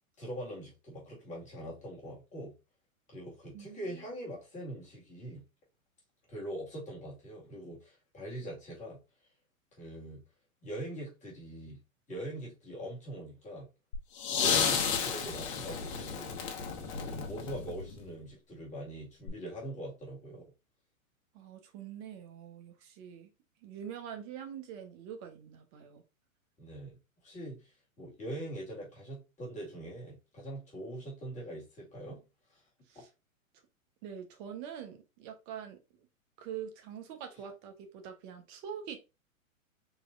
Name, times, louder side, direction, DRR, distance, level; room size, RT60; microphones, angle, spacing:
voice 1, 0.2-2.5 3.1-5.4 6.3-9.0 9.8-10.2 10.6-11.8 12.1-13.7 14.3-16.3 17.0-20.5 26.6-26.9 27.2-27.7 28.0-32.2 32.5-32.6, right 1 dB, 15° left, 2.1 m, -42 dB
voice 2, 3.5-3.9 21.3-23.3 23.6-26.0 32.9-33.1 34.0-36.1 36.4-39.0, right 8 dB, 35° right, 1.0 m, -44 dB
sound 1, 13.9-18.1 19.3-19.4, left 6 dB, 50° left, 1.2 m, -32 dB
4.1 x 3.1 x 2.5 m
hypercardioid pair, 125°, 42 cm